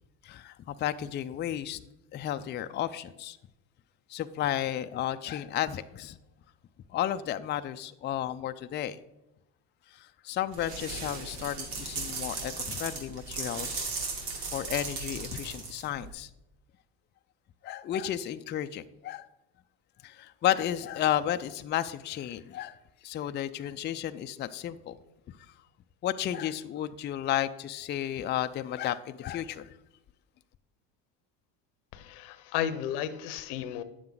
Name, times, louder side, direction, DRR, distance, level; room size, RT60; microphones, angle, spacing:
voice 1, 0.2-1.8 2.1-3.4 4.1-6.2 6.9-9.0 9.9-13.9 14.5-16.3 17.6-19.3 20.0-22.8 23.0-25.0 25.3-25.4 26.0-29.7, left 11 dB, 30° left, 10 dB, 0.4 m, -33 dB
sound 1, 10.5-16.1, right 4 dB, 75° right, 2.7 m, -37 dB
voice 2, 31.9-33.8, left 10 dB, 80° left, 13 dB, 0.9 m, -33 dB
9.9 x 7.4 x 3.9 m, 0.92 s
supercardioid pair, 95°, 36 cm